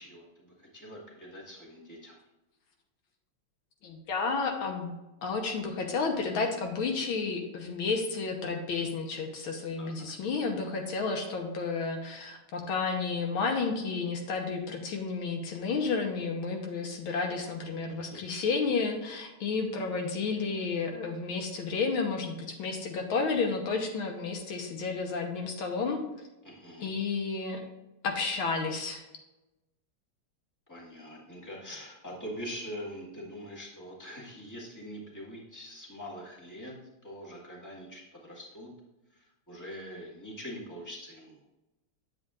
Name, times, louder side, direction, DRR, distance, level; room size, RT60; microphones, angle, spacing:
voice 1, 0.0-2.1 9.8-10.0 26.4-26.9 30.7-36.7 37.0-38.7 39.1-41.4, equal, 10° left, -4 dB, 1.6 m, -43 dB
voice 2, 3.8-4.9 5.2-26.0 26.8-27.6 28.0-29.0, left 4 dB, 80° left, 3 dB, 1.8 m, -31 dB
9.8 x 7.6 x 2.4 m, 1.0 s
omnidirectional pair, 2.3 m